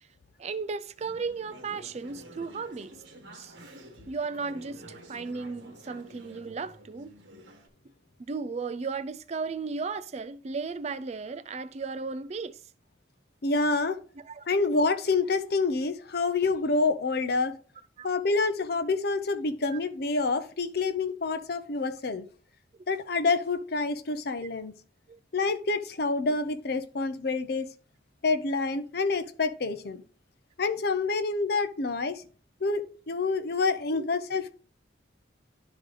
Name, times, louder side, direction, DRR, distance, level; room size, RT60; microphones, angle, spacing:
voice 1, 0.4-2.9 3.4-3.5 4.1-7.1 8.3-12.6 14.3-14.5 18.0-18.1 19.7-19.8 25.1-25.2 33.9-34.1, right 4 dB, 35° right, 0.4 m, -35 dB
Conversation / Chatter, 1.0-7.7, right 1 dB, 75° right, 1.5 m, -49 dB
voice 2, 13.4-14.0 14.5-17.6 18.0-22.3 22.9-24.7 25.3-27.7 28.2-30.0 30.6-32.2 32.6-34.6, left 3 dB, 55° left, 0.7 m, -27 dB
11.0 x 3.8 x 3.2 m
head